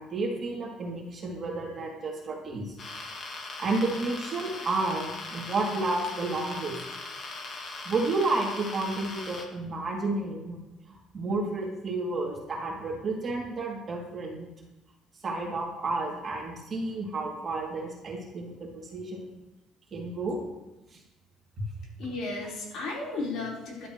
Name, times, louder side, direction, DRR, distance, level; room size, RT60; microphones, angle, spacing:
voice 1, 0.0-2.7 3.6-6.8 7.8-10.6 10.9-14.5 15.2-19.3 19.9-20.4 20.9-21.0, right 2 dB, 30° right, -3 dB, 3.1 m, -31 dB
sound 1, 2.8-9.5, left 3 dB, 35° left, 1.8 m, -40 dB
voice 2, 22.0-23.9, left 3 dB, 55° left, -3 dB, 4.8 m, -34 dB
17.5 x 12.0 x 3.3 m, 1.0 s
cardioid pair, 160°, 0 cm